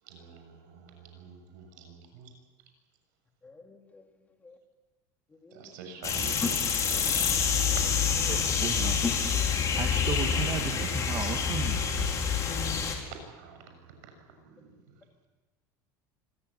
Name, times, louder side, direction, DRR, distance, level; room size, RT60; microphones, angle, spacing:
voice 1, 0.0-2.3 5.5-7.5 9.6-9.8 13.3-14.9, right 5 dB, 85° right, 5 dB, 6.7 m, -48 dB
voice 2, 3.4-4.0 4.4-4.6 5.4-5.7 6.4-6.5 8.3-8.4 9.0-9.1, left 4 dB, 15° left, 4 dB, 2.7 m, -36 dB
sound 1, 6.0-13.0, left 6 dB, 35° left, 4.4 m, -27 dB
voice 3, 8.3-9.0 9.8-12.1, right 7 dB, 35° right, 4 dB, 2.0 m, -35 dB
26.0 x 15.0 x 10.0 m, 1.3 s
supercardioid pair, 130°, 10 cm